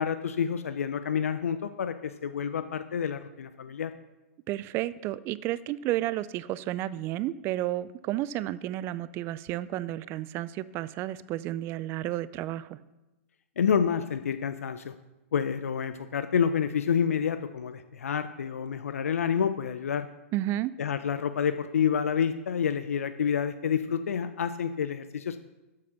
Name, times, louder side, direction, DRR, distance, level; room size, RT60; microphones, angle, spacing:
voice 1, 0.0-3.9 13.6-15.0 15.3-20.1 20.8-25.4, left 7 dB, 85° left, 11 dB, 0.5 m, -28 dB
voice 2, 4.5-12.8 20.3-20.7, right 14 dB, 30° right, 18 dB, 0.3 m, -32 dB
7.6 x 7.4 x 5.9 m, 1.0 s
hypercardioid pair, 125°, 8 cm